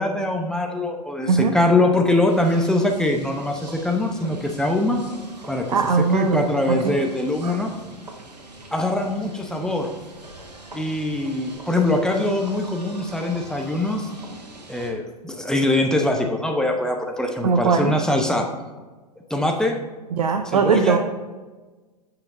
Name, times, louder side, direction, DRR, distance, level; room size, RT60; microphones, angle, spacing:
voice 1, 0.0-5.0 5.5-5.7 6.1-7.7 8.7-9.9 10.7-14.1 14.7-18.4 19.3-19.8 20.5-21.0, left 2 dB, 5° left, 2 dB, 0.9 m, -22 dB
sound 1, 2.2-14.9, right 1 dB, 85° right, 1.5 m, -43 dB
voice 2, 5.7-7.0 7.4-7.6 9.6-9.7 17.4-18.0 20.1-21.0, right 5 dB, 65° right, 6 dB, 0.7 m, -20 dB
15.5 x 5.8 x 2.7 m, 1.3 s
figure-of-eight pair, 100°, 21 cm